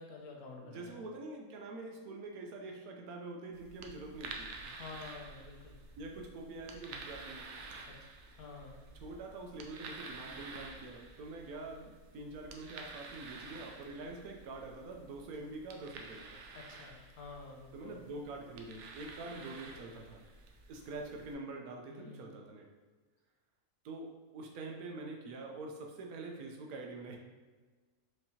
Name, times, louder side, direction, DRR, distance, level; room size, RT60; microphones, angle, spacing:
voice 1, 0.0-0.9 4.6-5.8 7.9-8.0 8.4-8.8 16.5-18.0 21.9-22.3, left 3 dB, 85° left, 0 dB, 1.3 m, -49 dB
voice 2, 0.6-4.5 6.0-7.5 9.0-16.3 17.7-20.2 20.7-22.7 23.8-27.2, right 2 dB, 80° right, 1 dB, 1.2 m, -45 dB
sound 1, 3.5-21.3, right 3 dB, 65° right, 0.7 m, -50 dB
4.7 x 3.3 x 2.8 m, 1.4 s
omnidirectional pair, 1.5 m